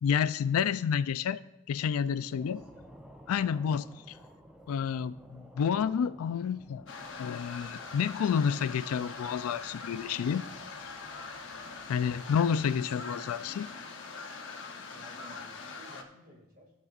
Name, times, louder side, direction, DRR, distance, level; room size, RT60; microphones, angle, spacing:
voice 1, 0.0-1.4 1.7-2.6 3.3-3.9 4.7-6.8 7.2-10.4 10.8-10.9 11.9-13.7, left 7 dB, 85° left, 0.3 m, -29 dB
voice 2, 2.3-2.7 14.9-16.7, equal, 40° right, 2.0 m, -56 dB
sound 1, 2.4-12.7, equal, 5° right, 0.5 m, -55 dB
sound 2, 6.9-16.0, left 4 dB, 60° left, 0.8 m, -43 dB
16.0 x 6.6 x 2.4 m
head